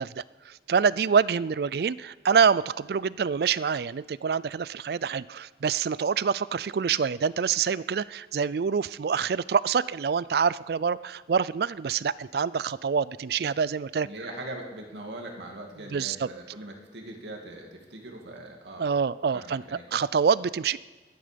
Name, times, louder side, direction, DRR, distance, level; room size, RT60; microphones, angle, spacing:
voice 1, 0.0-14.1 15.9-16.3 18.8-19.6 19.9-20.8, right 6 dB, 60° right, 19 dB, 0.3 m, -26 dB
voice 2, 14.0-18.9 19.3-19.8, right 1 dB, 75° right, 1 dB, 2.4 m, -41 dB
21.5 x 10.5 x 5.2 m, 1.3 s
head